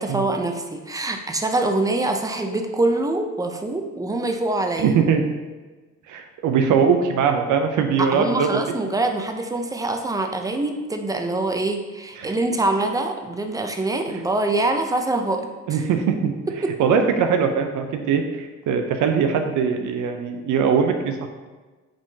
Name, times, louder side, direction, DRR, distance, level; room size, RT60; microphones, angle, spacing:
voice 1, 0.0-5.0 8.0-15.8 16.5-16.7, right 2 dB, 10° right, 5 dB, 0.4 m, -24 dB
voice 2, 4.8-5.2 6.1-8.5 12.2-12.3 15.7-16.4 16.8-21.3, right 6 dB, 80° right, 6 dB, 0.5 m, -21 dB
5.1 x 3.6 x 2.7 m, 1.3 s
cardioid pair, 90°, 30 cm